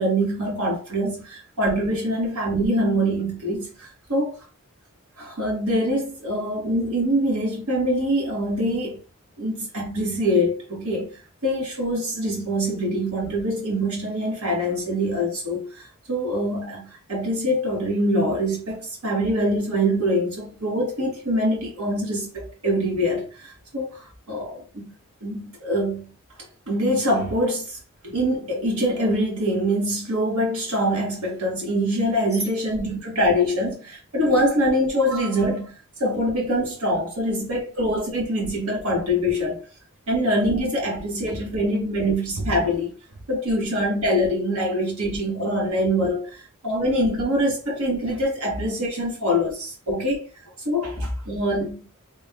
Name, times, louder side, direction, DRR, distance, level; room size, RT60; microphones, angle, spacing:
voice 1, 0.0-4.3 5.2-9.0 9.4-24.9 25.2-26.1 26.7-27.8 28.0-35.7 36.0-39.6 40.1-42.9 43.3-50.2 50.7-51.8, equal, 85° right, 2.0 m, -24 dB
3.9 x 2.7 x 3.7 m
head